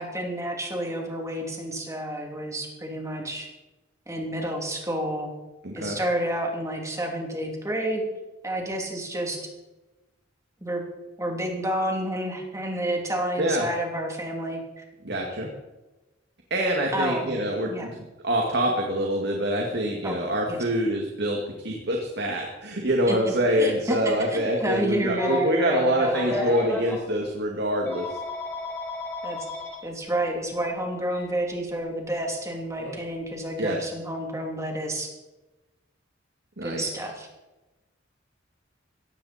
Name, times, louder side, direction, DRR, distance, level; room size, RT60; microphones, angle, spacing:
voice 1, 0.0-3.5 4.1-5.3 5.7-8.0 8.4-9.5 10.6-10.9 11.2-14.8 16.9-17.3 17.6-17.9 20.0-20.2 20.5-20.6 23.1-23.2 23.6-26.5 29.2-29.4 29.8-35.1 36.6-37.3, right 1 dB, 15° right, 1 dB, 3.0 m, -30 dB
voice 2, 5.6-6.0 13.4-13.7 15.0-15.5 16.5-28.2 33.6-33.8 36.6-36.8, equal, 60° right, 0 dB, 2.1 m, -25 dB
Telephone, 25.1-27.0 27.9-29.8 31.1-31.3 32.8-33.0, left 2 dB, 10° left, 6.6 m, -33 dB
17.0 x 15.0 x 4.3 m, 1.1 s
head